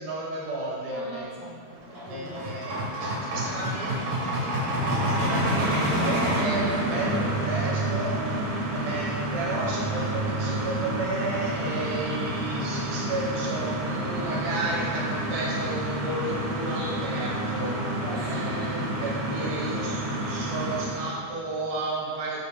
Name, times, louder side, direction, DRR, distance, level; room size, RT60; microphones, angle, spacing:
voice 1, 0.0-1.3 2.1-4.5 4.8-5.7 5.9-8.2 8.7-17.8 18.1-22.4, right 2 dB, 80° right, -5 dB, 3.1 m, -33 dB
voice 2, 0.9-2.4 8.2-8.7 17.7-19.0, equal, 60° left, -7 dB, 2.0 m, -40 dB
sound 1, 1.7-21.1, right 1 dB, 55° right, 2.0 m, -29 dB
sound 2, 4.4-11.2, right 4 dB, 80° left, 0.4 m, -36 dB
9.5 x 4.4 x 3.3 m, 2.3 s
omnidirectional pair, 3.7 m